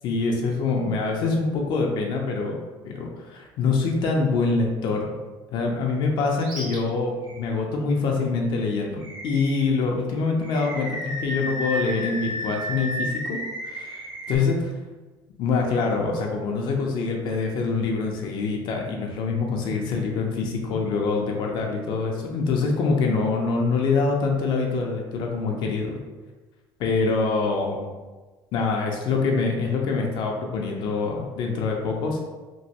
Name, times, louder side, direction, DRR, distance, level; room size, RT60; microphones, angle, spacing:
voice 1, 0.0-5.2 5.5-13.4 13.6-14.6 15.4-26.0 26.8-27.9 28.5-32.2, left 4 dB, 65° left, 1 dB, 0.5 m, -25 dB
Animal, 6.4-6.8 7.2-7.4 9.0-9.7 10.4-14.4, equal, 45° right, 1.1 m, -32 dB
3.0 x 2.6 x 2.8 m, 1.2 s
cardioid pair, 135°, 9 cm